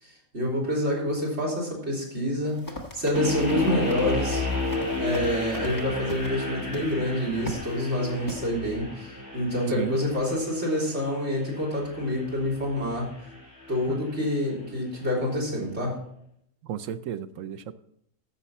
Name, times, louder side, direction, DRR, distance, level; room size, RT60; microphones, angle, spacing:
voice 1, 0.0-2.6 2.9-4.4 5.0-13.1 13.7-16.0, left 1 dB, 55° right, -5 dB, 3.9 m, -27 dB
Run, 2.5-6.4 6.7-6.9 7.4-7.7 8.3-8.4, left 1 dB, 15° left, 1.3 m, -39 dB
sound 1, 3.1-14.2, left 2 dB, 5° right, 3.7 m, -33 dB
voice 2, 16.6-17.7, right 9 dB, 75° right, 12 dB, 1.0 m, -33 dB
13.5 x 6.7 x 4.2 m, 0.73 s
omnidirectional pair, 1.4 m